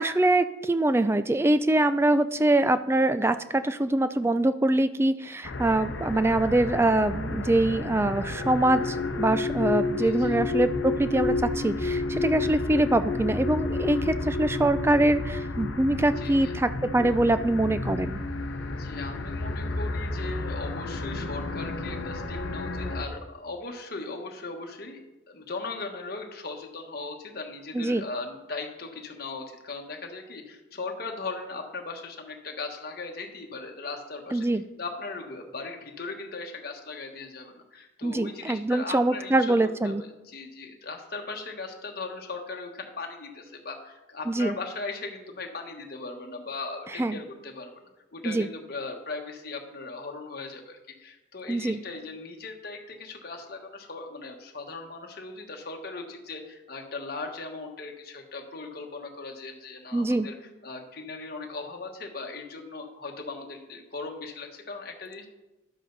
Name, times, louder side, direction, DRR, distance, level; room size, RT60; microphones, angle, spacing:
voice 1, 0.0-18.2 27.7-28.0 34.3-34.6 38.0-40.0 44.3-44.5 47.0-47.2 48.2-48.5 51.5-51.8 59.9-60.3, right 1 dB, 10° right, 12 dB, 0.3 m, -24 dB
sound 1, 5.4-23.1, left 3 dB, 70° left, 0.8 m, -31 dB
voice 2, 10.0-10.4 12.4-12.7 16.2-16.5 18.7-25.0 25.3-34.5 34.8-47.7 48.1-60.3 60.6-65.3, left 3 dB, 50° left, 2 dB, 1.3 m, -38 dB
11.5 x 7.5 x 4.0 m, 1.0 s
head